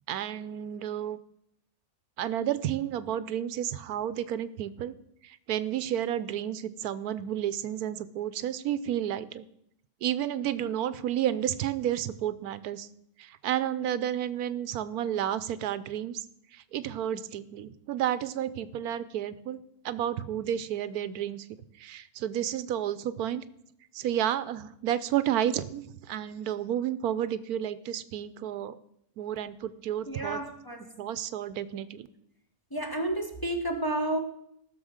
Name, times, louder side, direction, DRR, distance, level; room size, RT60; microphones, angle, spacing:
voice 1, 0.1-1.2 2.2-4.9 5.2-9.5 10.0-12.9 13.2-16.2 16.5-19.6 19.8-21.5 21.8-23.4 23.9-28.7 29.2-30.4 31.0-32.1, right 11 dB, 90° right, 15 dB, 1.2 m, -31 dB
voice 2, 30.1-31.0 32.7-34.2, right 1 dB, 15° left, 3 dB, 1.2 m, -31 dB
15.0 x 6.7 x 6.4 m, 0.75 s
omnidirectional pair, 1.5 m